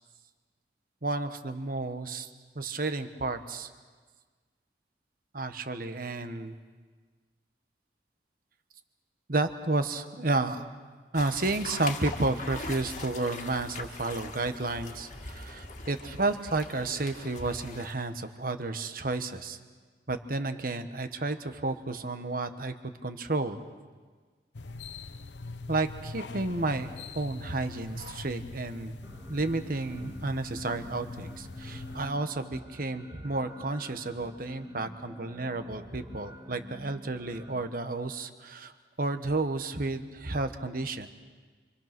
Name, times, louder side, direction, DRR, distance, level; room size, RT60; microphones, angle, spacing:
voice 1, 1.0-2.3 2.5-3.7 5.3-6.6 9.3-10.7 11.1-19.6 20.1-23.6 25.7-26.9 27.1-29.0 29.3-41.1, right 2 dB, 50° right, 9 dB, 1.4 m, -31 dB
sound 1, 11.1-17.9, left 3 dB, 45° left, 2.0 m, -41 dB
sound 2, 24.5-32.1, left 3 dB, 75° left, 0.8 m, -43 dB
sound 3, 29.0-37.6, equal, 15° right, 2.1 m, -47 dB
28.5 x 24.5 x 6.1 m, 1.4 s
head